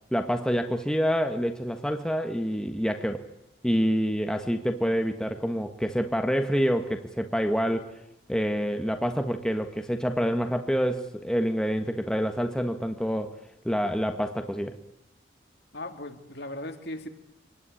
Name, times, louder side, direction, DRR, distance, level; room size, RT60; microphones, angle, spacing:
voice 1, 0.1-3.3 3.6-7.9 8.3-13.3 13.6-14.8, equal, 5° left, 6 dB, 1.4 m, -27 dB
voice 2, 15.7-17.1, left 1 dB, 55° left, 7 dB, 2.6 m, -37 dB
26.0 x 19.5 x 9.9 m, 0.84 s
head